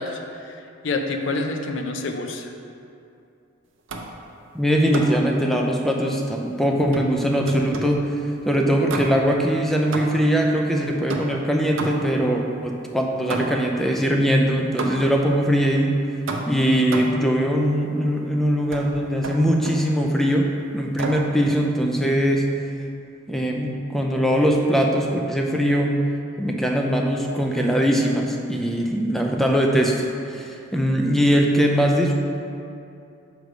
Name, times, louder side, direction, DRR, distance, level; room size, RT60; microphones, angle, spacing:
voice 1, 0.0-2.5, left 3 dB, 60° left, 4 dB, 0.5 m, -28 dB
sound 1, 3.9-4.2 4.9-5.3 6.9-8.0 8.9-9.4 9.9-10.4 11.1-12.2 13.3-13.8 14.8-15.2 16.3-17.3 18.7-18.9 19.2-19.9 21.0-21.3, right 2 dB, 60° right, 0.5 m, -31 dB
voice 2, 4.5-8.1 8.5-16.0 16.5-20.5 20.7-22.5 23.3-26.0 26.4-32.1, equal, ahead, 0 dB, 0.3 m, -21 dB
6.6 x 3.2 x 5.0 m, 2.6 s
head